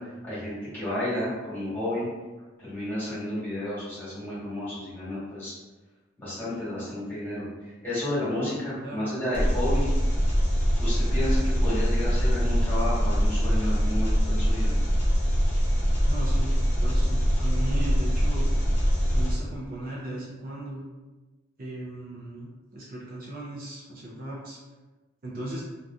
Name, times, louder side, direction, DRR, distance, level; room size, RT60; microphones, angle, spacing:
voice 1, 0.0-2.1 2.6-5.5 6.2-9.9 10.8-14.7, left 1 dB, 10° left, -11 dB, 1.2 m, -31 dB
Engine, 9.3-19.3, equal, 35° left, 0.6 m, -23 dB
voice 2, 16.0-18.5 19.1-20.8 21.6-24.6 25.2-25.6, right 1 dB, 45° right, -5 dB, 0.5 m, -37 dB
2.8 x 2.4 x 2.3 m, 1.2 s
head